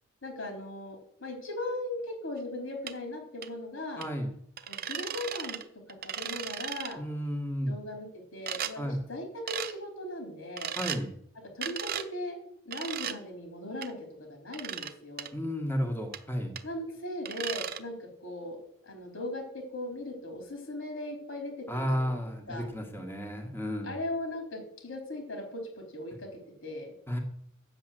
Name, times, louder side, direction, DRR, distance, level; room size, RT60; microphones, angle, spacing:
voice 1, 0.2-4.0 4.7-5.6 6.0-7.0 7.7-10.7 11.5-15.3 16.6-18.6 18.8-22.2 22.5-22.7 23.8-26.3 26.6-26.9, left 1 dB, 80° left, 3 dB, 3.9 m, -38 dB
sound 1, 2.9-3.0 3.4-3.5 4.0-4.1 4.6-5.6 5.9-6.9 8.5-8.7 9.5-9.7 10.6-11.0 11.6-12.1 12.7-13.2 13.8-13.9 14.5-14.9 15.2-15.3 16.1-16.2 16.6-16.7 17.3-17.8, right 9 dB, 50° right, 0.8 m, -36 dB
voice 2, 4.0-4.3 7.0-7.7 8.8-9.0 10.8-11.1 15.3-16.6 21.7-23.9 27.1-27.2, equal, 10° left, 1 dB, 1.6 m, -32 dB
9.0 x 7.7 x 7.6 m, 0.69 s
head